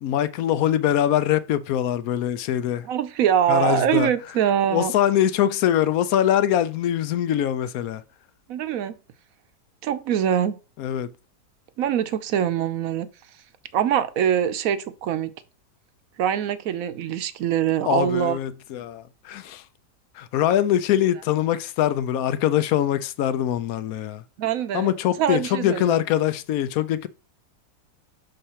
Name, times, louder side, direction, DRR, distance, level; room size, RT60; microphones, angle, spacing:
voice 1, 0.0-2.9 3.5-4.1 4.7-8.0 10.8-11.1 17.9-19.6 20.2-24.2 24.7-27.1, left 11 dB, 70° left, 0.9 m, -23 dB
voice 2, 2.8-4.9 8.5-9.0 9.8-10.6 11.8-13.1 13.7-15.3 16.2-18.4 24.4-24.9 25.2-26.0, right 9 dB, 65° right, 1.0 m, -23 dB
6.5 x 5.1 x 4.3 m
omnidirectional pair, 1.8 m